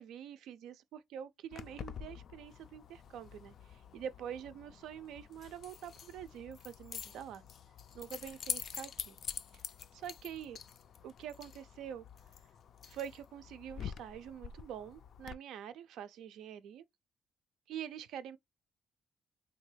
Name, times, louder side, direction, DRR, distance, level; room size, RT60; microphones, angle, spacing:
voice 1, 0.0-7.4 7.9-9.2 10.0-10.6 11.0-12.1 12.9-16.9 17.7-18.4, right 9 dB, 85° right, 0.4 m, -46 dB
Keys jangling, 1.5-15.3, left 7 dB, 60° left, 0.3 m, -46 dB
3.3 x 2.3 x 3.2 m
cardioid pair, 90°, 0 cm